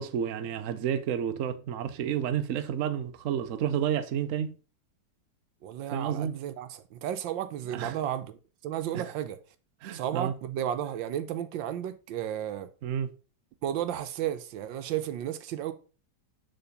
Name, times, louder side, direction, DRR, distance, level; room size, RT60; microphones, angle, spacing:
voice 1, 0.0-4.5 5.9-6.4 7.7-8.0 8.9-9.1 9.8-10.3 12.8-13.1, right 9 dB, 60° right, 0.9 m, -30 dB
voice 2, 5.6-9.4 9.9-12.7 13.6-15.7, right 10 dB, 90° right, 1.4 m, -33 dB
7.0 x 3.8 x 5.1 m
omnidirectional pair, 2.0 m